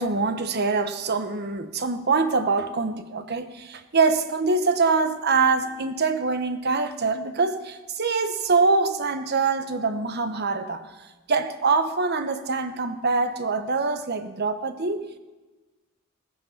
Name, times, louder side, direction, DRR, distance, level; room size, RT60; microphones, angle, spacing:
voice 1, 0.0-10.8 11.3-15.0, right 4 dB, 50° right, 9 dB, 1.1 m, -24 dB
18.5 x 9.6 x 7.2 m, 1.2 s
head